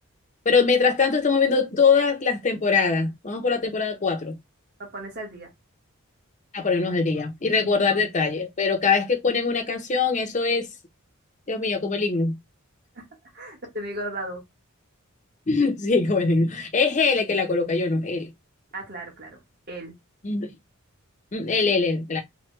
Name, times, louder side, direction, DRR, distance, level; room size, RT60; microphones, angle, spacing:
voice 1, 0.5-4.4 6.5-10.7 11.5-12.4 15.5-18.3 20.2-20.5 21.3-22.2, left 4 dB, 35° left, 0.6 m, -22 dB
voice 2, 4.8-5.5 12.9-13.1 13.3-14.4 18.7-19.4 19.7-19.9 21.5-21.7, right 1 dB, 45° right, 1.4 m, -35 dB
3.2 x 2.2 x 3.1 m
head